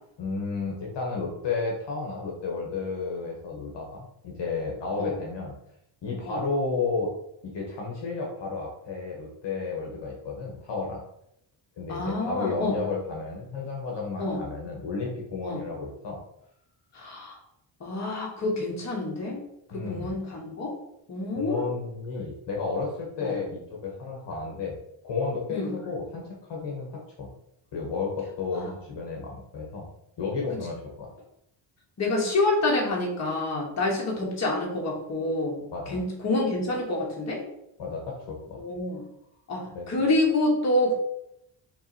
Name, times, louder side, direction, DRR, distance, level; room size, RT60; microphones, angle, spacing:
voice 1, 0.2-5.5 6.0-7.1 7.4-11.0 11.8-16.2 19.7-20.2 21.3-24.8 25.0-27.3 27.7-29.9 30.2-31.1 35.7-36.0 37.8-38.6 39.7-39.9, left 4 dB, 55° left, -1 dB, 1.1 m, -32 dB
voice 2, 11.9-12.8 14.2-14.4 15.4-15.7 16.9-17.4 17.8-19.4 19.7-20.7 21.1-21.6 23.2-23.3 25.5-25.7 28.5-28.7 32.0-37.4 38.6-39.0 39.5-40.9, left 2 dB, 30° left, -2 dB, 1.2 m, -27 dB
4.6 x 3.1 x 2.8 m, 0.78 s
cardioid pair, 120°, 50 cm